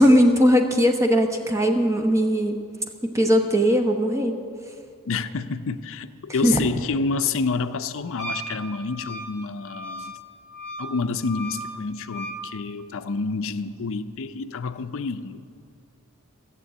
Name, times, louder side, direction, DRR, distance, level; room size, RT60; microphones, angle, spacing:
voice 1, 0.0-2.6 3.0-4.3 6.4-6.6, equal, 15° right, 4 dB, 0.9 m, -19 dB
voice 2, 5.1-10.1 10.8-15.4, left 4 dB, 65° left, 11 dB, 0.5 m, -28 dB
Wind instrument woodwind instrument, 8.2-12.5, equal, 40° right, 2.1 m, -36 dB
14.5 x 7.6 x 8.1 m, 2.3 s
head